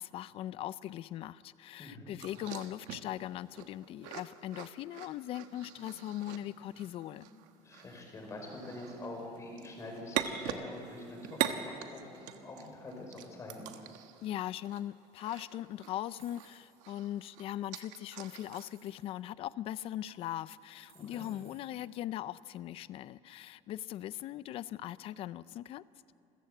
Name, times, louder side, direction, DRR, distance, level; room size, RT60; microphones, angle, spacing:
voice 1, 0.0-7.3 14.2-25.8, left 13 dB, 50° left, 18 dB, 0.5 m, -40 dB
voice 2, 1.8-2.2 7.6-13.7 20.9-21.3, left 2 dB, 25° left, 1 dB, 5.0 m, -45 dB
sound 1, 2.2-16.5 16.8-18.7, right 11 dB, 85° right, 1.3 m, -42 dB
sound 2, 5.4-13.4, left 1 dB, 10° left, 4.1 m, -64 dB
sound 3, 16.0-16.9 17.6-17.7 18.2-19.1 20.1-20.2 20.6-21.8, right 7 dB, 55° right, 6.2 m, -63 dB
28.0 x 15.0 x 7.9 m, 2.8 s
cardioid pair, 155°, 13 cm